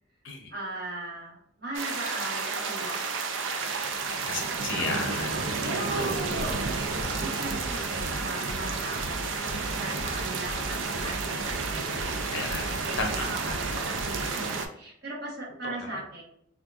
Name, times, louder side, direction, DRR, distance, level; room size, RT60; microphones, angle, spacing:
voice 1, 0.5-3.2 5.3-6.6 7.2-12.3 12.7-16.2, right 2 dB, 55° right, -4 dB, 1.2 m, -38 dB
sound 1, 1.7-14.7, right 4 dB, 75° right, 0.4 m, -31 dB
voice 2, 4.2-5.4 5.9-6.1 12.3-12.7 13.0-13.3 15.6-16.0, left 3 dB, 70° left, 3 dB, 0.6 m, -33 dB
sound 2, 6.5-14.5, equal, 25° left, 0.4 m, -39 dB
3.7 x 2.3 x 2.4 m, 0.70 s
head